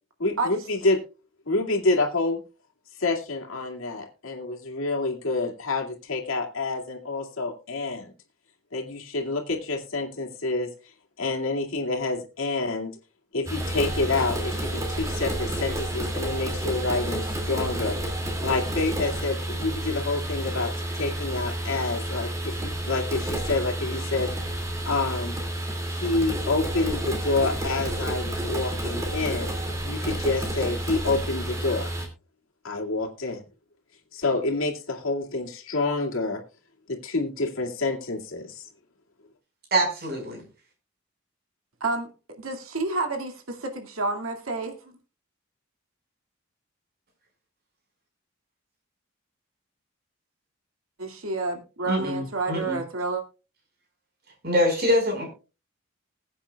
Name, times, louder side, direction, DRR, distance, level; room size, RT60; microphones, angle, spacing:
voice 1, 0.2-1.0 1.5-2.4 3.0-8.1 8.7-10.7 11.2-13.0 13.3-18.0 18.4-25.3 25.9-29.5 29.8-31.9 32.6-33.4 34.1-36.4 36.9-38.7, left 3 dB, 75° left, 2 dB, 2.4 m, -28 dB
sound 1, 13.5-32.1, right 1 dB, 15° right, 2.4 m, -30 dB
voice 2, 39.7-40.4 51.9-52.8 54.4-55.3, equal, 45° right, 2 dB, 5.0 m, -24 dB
voice 3, 41.8-44.8 51.0-53.2, right 3 dB, 85° right, 4 dB, 2.3 m, -30 dB
20.5 x 8.6 x 2.3 m, 0.32 s
head